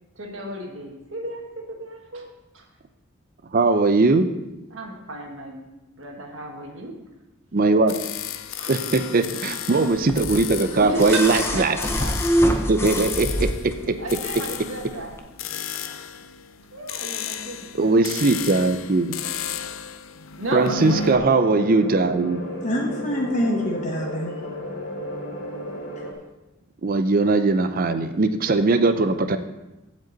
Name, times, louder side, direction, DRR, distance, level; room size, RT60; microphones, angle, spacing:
voice 1, 0.2-2.3 2.5-2.6 4.7-5.6 6.0-6.9 8.6-8.7 10.8-12.1 14.0-15.2 16.7-17.9 20.4-22.7, right 2 dB, 75° right, 1 dB, 1.6 m, -33 dB
voice 2, 3.5-4.3 7.5-7.9 8.7-11.8 12.7-13.5 17.7-19.2 20.5-22.4 26.8-29.4, right 3 dB, 45° right, 9 dB, 0.5 m, -20 dB
sound 1, 7.9-21.2, left 7 dB, 80° left, 0.5 m, -34 dB
sound 2, 10.1-13.9 15.1-15.2, equal, 10° left, 0.6 m, -25 dB
sound 3, 20.6-26.1, left 1 dB, 60° left, 1.8 m, -34 dB
voice 3, 22.6-24.3, equal, 35° left, 0 dB, 1.1 m, -25 dB
15.0 x 5.3 x 4.0 m, 0.98 s
head